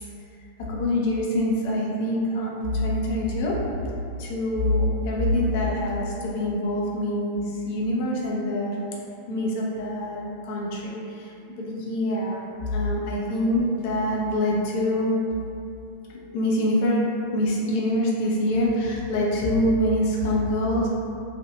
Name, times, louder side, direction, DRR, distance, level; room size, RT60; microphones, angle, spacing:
voice 1, 0.7-3.7 4.2-8.8 9.3-12.4 12.7-15.2 16.3-17.0 17.3-20.9, left 1 dB, 45° left, -3 dB, 0.5 m, -25 dB
2.5 x 2.3 x 2.8 m, 2.6 s
figure-of-eight pair, 90°, 0 cm